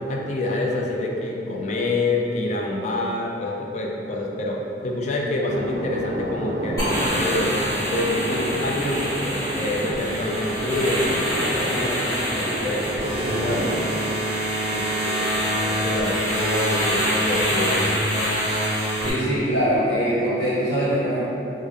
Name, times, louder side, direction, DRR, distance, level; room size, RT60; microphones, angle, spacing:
voice 1, 0.1-7.6 7.9-11.3 11.7-12.0 12.3-13.9 14.7-18.1, left 2 dB, 40° left, -1 dB, 0.4 m, -27 dB
sound 1, 5.5-13.8, right 1 dB, 55° right, 0.4 m, -30 dB
sound 2, 6.8-19.1, equal, 20° left, 1.1 m, -25 dB
voice 2, 19.0-21.3, equal, 85° left, -8 dB, 1.0 m, -22 dB
3.5 x 2.1 x 3.5 m, 2.9 s
head